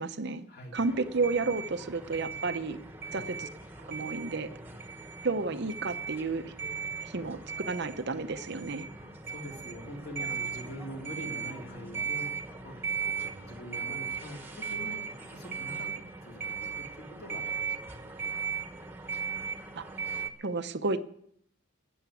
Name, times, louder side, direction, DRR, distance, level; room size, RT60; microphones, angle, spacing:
voice 1, 0.0-0.5 0.7-2.8 3.1-3.5 3.9-4.5 5.2-6.5 7.0-8.9 19.8-19.9 20.4-21.0, right 3 dB, 50° right, 10 dB, 0.7 m, -31 dB
sound 1, 0.7-20.3, right 6 dB, 10° right, 1.3 m, -38 dB
voice 2, 9.3-18.6, equal, 45° left, 0 dB, 3.3 m, -45 dB
13.0 x 9.5 x 8.3 m, 0.70 s
head